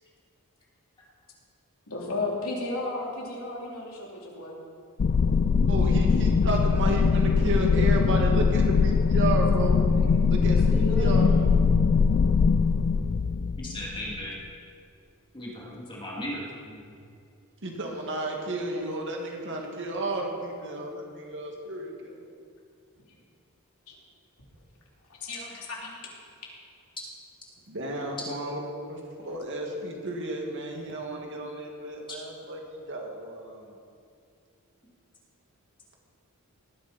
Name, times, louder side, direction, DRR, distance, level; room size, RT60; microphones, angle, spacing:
voice 1, 1.9-4.6 10.7-11.3 23.9-24.0 25.2-26.0, left 2 dB, 70° left, -4 dB, 3.4 m, -33 dB
sound 1, 5.0-14.2, left 5 dB, 40° left, 0.3 m, -22 dB
voice 2, 5.7-9.8 10.2-11.4 17.6-22.2 27.7-33.8, right 1 dB, 55° right, 0 dB, 2.2 m, -32 dB
voice 3, 13.6-14.4 15.3-16.9 18.7-18.9, equal, 25° left, -5 dB, 2.8 m, -37 dB
19.0 x 9.9 x 4.4 m, 2.3 s
head